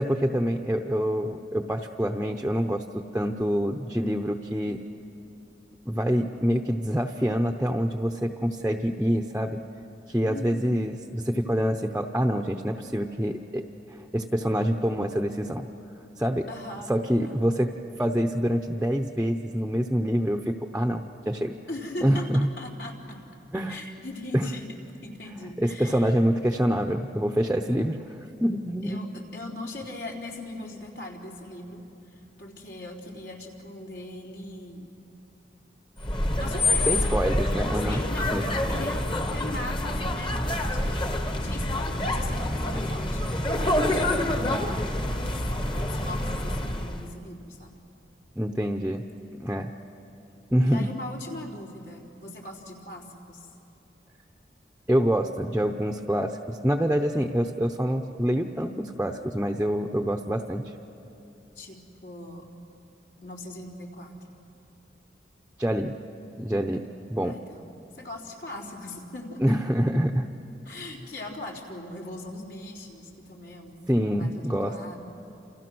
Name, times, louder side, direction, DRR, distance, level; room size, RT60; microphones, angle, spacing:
voice 1, 0.0-4.8 5.9-9.6 10.1-13.6 14.1-15.7 16.2-16.5 16.9-17.7 18.0-21.6 22.0-22.5 23.5-23.8 24.3-24.5 25.6-29.0 36.8-38.0 38.3-38.4 48.4-49.0 49.4-49.7 50.5-50.9 54.9-60.7 65.6-65.9 66.4-66.8 67.1-67.4 69.4-70.3 73.9-74.7, equal, 5° right, 4 dB, 0.7 m, -26 dB
voice 2, 10.2-10.7 16.5-16.9 17.2-17.5 21.7-23.4 23.7-24.7 25.0-26.1 28.8-31.8 32.1-34.9 36.4-37.2 37.7-39.0 39.3-43.2 43.5-45.4 45.9-47.8 50.7-53.5 61.6-62.5 63.2-64.4 67.2-69.4 70.7-75.0, left 1 dB, 70° left, 0 dB, 3.8 m, -40 dB
sound 1, 36.0-47.1, left 1 dB, 30° left, 1.3 m, -27 dB
29.0 x 28.5 x 6.2 m, 2.9 s
head